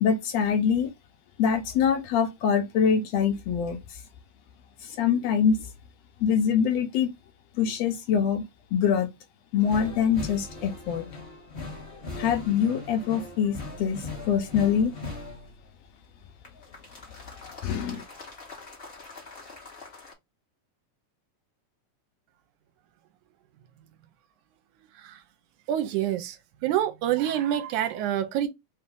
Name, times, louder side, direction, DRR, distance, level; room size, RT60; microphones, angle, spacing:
voice 1, 0.0-0.9 1.4-3.8 5.0-5.6 6.2-7.1 7.6-9.1 9.5-11.0 12.2-14.9 17.6-18.0, left 7 dB, 75° left, 1.6 m, -24 dB
sound 1, 9.6-15.6 16.4-20.1, left 3 dB, 35° left, 0.9 m, -40 dB
voice 2, 25.7-26.3 26.6-28.5, right 11 dB, 80° right, 2.2 m, -26 dB
4.7 x 2.8 x 3.6 m
omnidirectional pair, 3.5 m